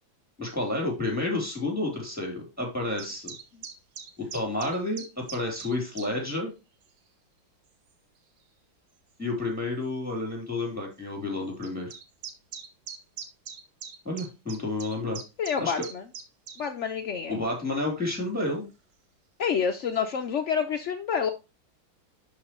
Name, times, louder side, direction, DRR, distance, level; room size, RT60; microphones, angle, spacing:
voice 1, 0.4-3.3 4.2-6.5 9.2-11.9 14.0-15.2 15.6-15.8 17.3-18.7, left 2 dB, 5° right, 0 dB, 3.3 m, -30 dB
sound 1, 3.0-6.1 6.8-7.0 7.9-8.0 9.1-9.2 9.5-9.6 9.8-9.9 11.6-16.6, right 6 dB, 75° right, 1.8 m, -41 dB
voice 2, 15.4-16.0 16.6-17.4 19.4-21.3, left 7 dB, 70° left, 5 dB, 0.6 m, -28 dB
11.5 x 4.5 x 3.0 m, 0.27 s
omnidirectional pair, 2.1 m